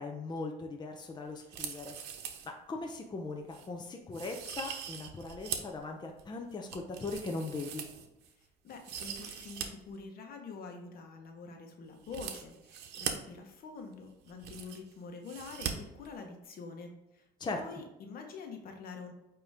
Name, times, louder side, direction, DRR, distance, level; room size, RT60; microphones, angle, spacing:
voice 1, 0.0-1.9 2.4-7.8 17.4-17.6, left 3 dB, 25° left, 2 dB, 0.7 m, -39 dB
sound 1, 1.4-2.5 2.9-3.0 3.5-3.7 4.1-5.8 6.2-8.3 8.7-9.7 9.9-10.0 12.0-13.1 13.9-14.0 14.2-14.9 15.3-15.7 16.0-16.1, right 8 dB, 80° right, 0.8 m, -41 dB
voice 2, 8.6-17.2 17.5-19.1, left 4 dB, 60° left, 3 dB, 1.2 m, -46 dB
8.7 x 3.0 x 3.6 m, 0.92 s
cardioid pair, 110°, 17 cm